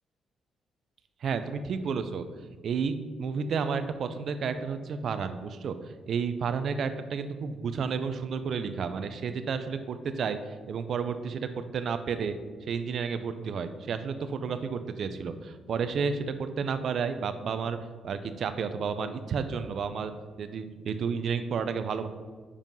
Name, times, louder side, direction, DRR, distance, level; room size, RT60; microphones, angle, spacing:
voice 1, 1.2-2.2 2.6-5.7 6.1-10.4 10.7-12.3 12.6-17.8 18.0-20.1 20.4-22.1, right 6 dB, 60° right, 10 dB, 0.5 m, -31 dB
5.5 x 5.0 x 5.3 m, 1.5 s
cardioid pair, 90°, 0 cm